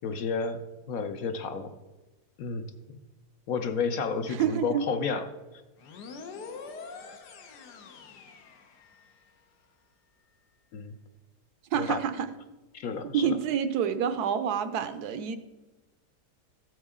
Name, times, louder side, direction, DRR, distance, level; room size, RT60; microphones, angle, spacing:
voice 1, 0.0-0.6 0.9-1.7 2.4-3.0 3.5-5.3 10.7-10.9 11.7-12.0 12.7-13.4, left 5 dB, 65° left, 8 dB, 1.1 m, -31 dB
voice 2, 4.3-4.9 11.7-12.3 13.1-15.4, right 8 dB, 75° right, 10 dB, 1.2 m, -28 dB
sound 1, 5.8-9.3, left 4 dB, 80° left, 1.5 m, -45 dB
14.0 x 8.0 x 3.7 m, 1.1 s
omnidirectional pair, 1.7 m